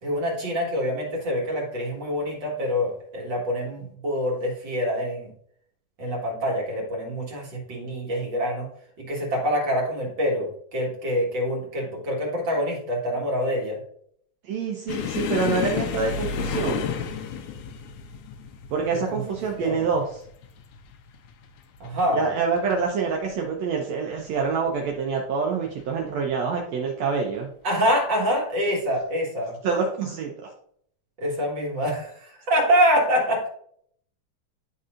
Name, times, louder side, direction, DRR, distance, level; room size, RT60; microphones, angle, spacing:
voice 1, 0.0-5.3 6.0-8.7 9.0-13.8 19.1-19.2 19.6-19.8 21.8-22.2 27.6-29.6 31.2-33.5, equal, 45° right, -2 dB, 1.9 m, -25 dB
voice 2, 14.4-16.9 18.7-20.2 22.1-27.5 29.6-30.5, right 5 dB, 70° right, 1 dB, 1.7 m, -26 dB
sound 1, 14.9-22.1 22.4-22.8 23.1-23.3 24.1-24.7 25.7-25.8 27.2-27.4, left 7 dB, 80° left, 1.8 m, -32 dB
11.0 x 4.1 x 2.5 m, 0.64 s
omnidirectional pair, 3.6 m